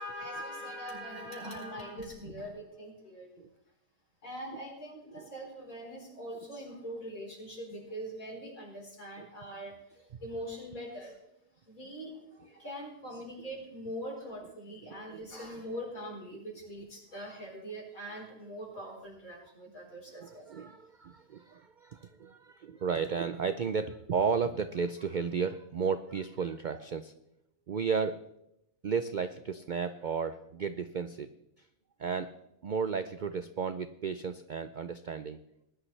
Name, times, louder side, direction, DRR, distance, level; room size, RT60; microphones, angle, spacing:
voice 1, 0.0-3.4 4.2-11.2 11.7-12.2 12.4-20.7, equal, 75° left, -2 dB, 4.6 m, -42 dB
voice 2, 14.8-15.3 20.2-27.1 27.7-28.2 28.8-31.3 32.0-32.3 32.6-35.4, right 6 dB, 70° right, 11 dB, 0.4 m, -33 dB
19.5 x 11.5 x 3.3 m, 0.82 s
omnidirectional pair, 1.5 m